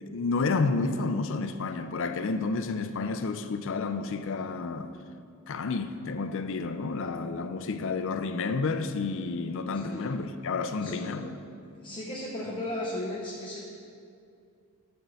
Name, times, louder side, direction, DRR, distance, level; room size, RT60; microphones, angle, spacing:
voice 1, 0.1-4.9 5.5-11.4, left 4 dB, 60° left, 0.4 m, -30 dB
voice 2, 10.8-11.2 11.8-13.6, left 1 dB, 20° left, 0.8 m, -35 dB
9.1 x 4.5 x 6.4 m
head